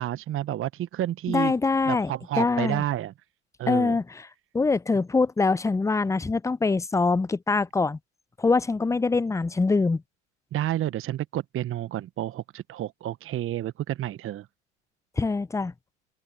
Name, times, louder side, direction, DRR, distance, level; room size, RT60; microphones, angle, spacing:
voice 1, 0.0-1.5 1.9-3.1 3.6-4.0 10.5-14.5, right 13 dB, 35° right, 1.1 m, -30 dB
voice 2, 1.3-2.1 2.4-2.8 3.7-4.3 4.5-8.0 8.4-10.0 15.2-15.7, left 3 dB, 10° left, 0.7 m, -24 dB
open air
figure-of-eight pair, 75°, 35 cm